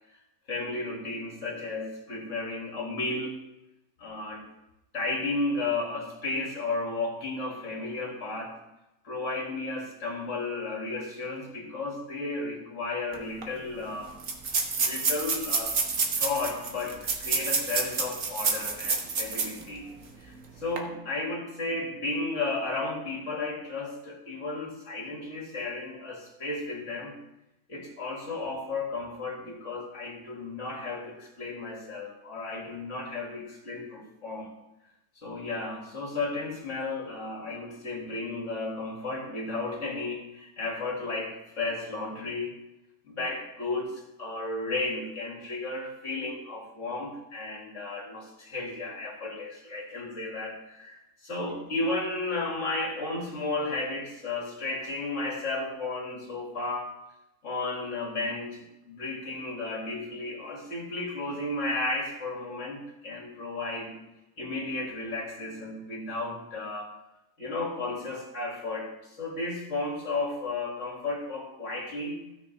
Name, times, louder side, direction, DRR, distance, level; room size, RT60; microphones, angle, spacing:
voice 1, 0.5-3.4 4.0-4.4 4.9-8.6 9.0-14.2 14.8-15.8 16.2-19.9 20.2-27.2 27.7-34.5 35.2-42.5 43.0-57.0 57.4-64.0 64.4-67.0 67.4-72.2, left 2 dB, 55° left, -2 dB, 2.6 m, -33 dB
sound 1, 13.1-13.2 13.4-13.5 14.2-19.6 20.0-20.1 20.6-20.8, right 4 dB, 60° right, 1.6 m, -28 dB
15.5 x 6.6 x 3.3 m, 0.92 s
omnidirectional pair, 1.6 m